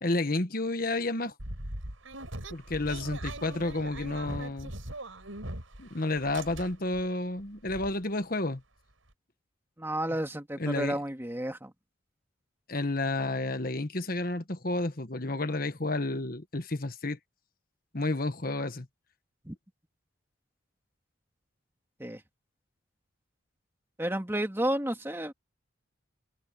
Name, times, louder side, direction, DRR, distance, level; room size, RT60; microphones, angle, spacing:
voice 1, 0.0-1.3 2.5-4.7 5.8-8.6 10.6-11.0 12.7-17.2 17.9-18.9, left 2 dB, 45° left, 1.4 m, -31 dB
sound 1, 1.4-5.9 6.2-7.0 7.4-7.5 7.7-7.9, right 1 dB, 80° right, 6.3 m, -40 dB
voice 2, 9.8-11.7 19.4-19.6 22.0-22.2 24.0-25.3, right 1 dB, 10° right, 2.4 m, -31 dB
head